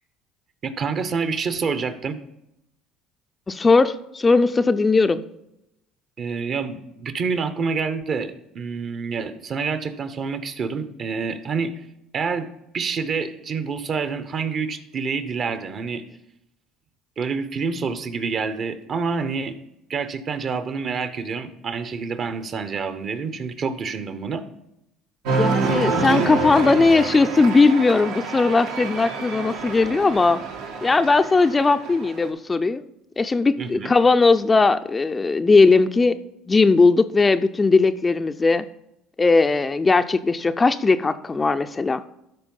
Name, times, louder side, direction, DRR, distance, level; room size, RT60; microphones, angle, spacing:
voice 1, 0.6-2.2 6.2-11.9 12.1-12.5 12.7-16.0 17.2-19.6 19.9-24.4 33.6-33.9, right 5 dB, 45° right, 11 dB, 1.0 m, -27 dB
voice 2, 3.5-5.2 25.3-30.4 30.8-32.8 33.2-36.2 36.5-38.7 39.2-42.0, left 3 dB, 20° left, 10 dB, 0.5 m, -18 dB
Cheering, 25.2-32.3, right 4 dB, 80° right, 1.7 m, -27 dB
12.0 x 4.5 x 5.4 m, 0.85 s
supercardioid pair, 85°, 0 cm